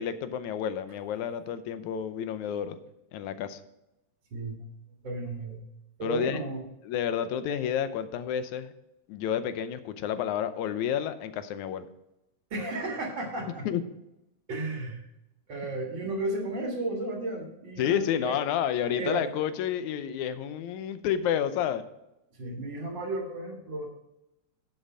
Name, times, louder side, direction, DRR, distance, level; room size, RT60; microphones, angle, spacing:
voice 1, 0.0-2.8 3.1-3.6 6.0-6.4 6.8-8.7 9.1-11.9 13.7-13.8 17.8-21.9, left 9 dB, 90° left, 11 dB, 2.2 m, -30 dB
voice 2, 4.3-4.7 5.0-5.6 6.0-6.6 12.5-13.7 14.5-15.0 15.5-18.4 18.9-19.2 22.3-23.9, right 2 dB, 45° right, 0 dB, 2.3 m, -33 dB
11.0 x 6.6 x 5.0 m, 0.89 s
omnidirectional pair, 3.3 m